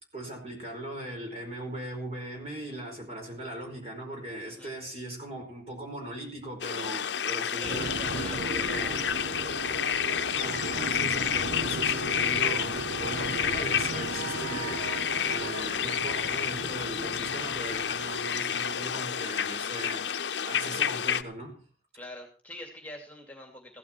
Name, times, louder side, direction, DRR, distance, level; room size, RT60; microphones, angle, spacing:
voice 1, 0.1-9.0 10.4-14.9 15.2-21.6, right 1 dB, 35° right, 4.7 m, -39 dB
sound 1, 6.6-21.2, left 8 dB, 85° left, 0.7 m, -30 dB
voice 2, 7.4-9.0 21.9-23.8, left 1 dB, 10° left, 2.5 m, -44 dB
sound 2, 7.6-19.0, right 4 dB, 90° right, 0.7 m, -38 dB
15.5 x 12.0 x 4.5 m
head